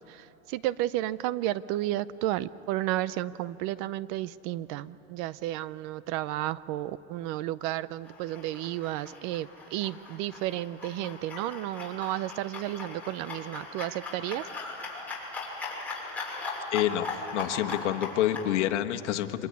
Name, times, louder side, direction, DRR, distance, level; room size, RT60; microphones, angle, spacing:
voice 1, 0.5-14.4, right 14 dB, 40° right, 17 dB, 0.6 m, -32 dB
sound 1, 8.0-18.5, left 3 dB, 5° left, 6.5 m, -39 dB
voice 2, 16.7-19.5, left 12 dB, 70° left, 6 dB, 1.6 m, -28 dB
25.5 x 23.0 x 9.7 m, 2.9 s
supercardioid pair, 135°, 37 cm